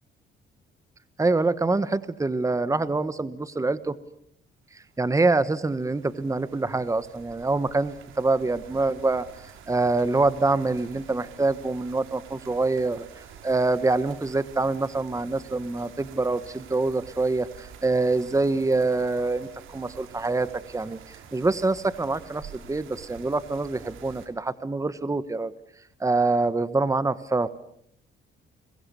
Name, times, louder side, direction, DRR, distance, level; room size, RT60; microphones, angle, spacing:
voice 1, 1.2-3.9 4.7-9.3 9.7-13.0 13.4-25.5 26.0-27.5, right 3 dB, 15° right, 14 dB, 1.3 m, -25 dB
sound 1, 4.8-24.3, right 7 dB, 90° right, 4.5 m, -48 dB
30.0 x 23.0 x 7.0 m, 0.70 s
cardioid pair, 90°, 20 cm